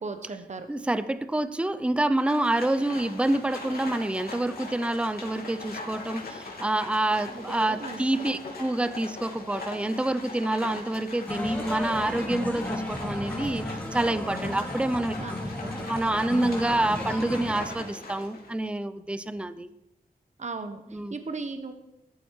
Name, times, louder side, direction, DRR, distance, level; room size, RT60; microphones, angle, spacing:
voice 1, 0.0-0.7 7.3-8.0 15.2-15.3 15.6-15.9 20.4-21.7, right 4 dB, 50° right, 8 dB, 1.2 m, -37 dB
voice 2, 0.7-13.6 13.9-15.1 15.7-19.7 20.9-21.1, right 1 dB, 5° right, 13 dB, 0.6 m, -27 dB
Livestock farm animals working animals, 2.2-18.6, left 3 dB, 80° left, 3.3 m, -41 dB
sound 1, 11.3-17.7, left 1 dB, 10° left, 2.6 m, -34 dB
17.0 x 13.5 x 4.7 m, 0.92 s
wide cardioid pair, 125°, 16 cm